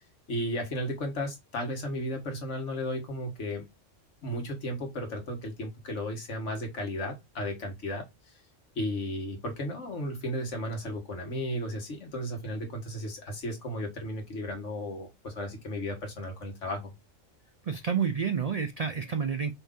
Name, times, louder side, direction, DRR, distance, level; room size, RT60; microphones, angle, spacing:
voice 1, 0.3-3.6 4.2-8.0 8.8-16.9, equal, 70° left, 1.8 m, -34 dB
voice 2, 17.7-19.5, right 6 dB, 65° right, 0.3 m, -29 dB
5.3 x 2.7 x 3.7 m
omnidirectional pair, 1.3 m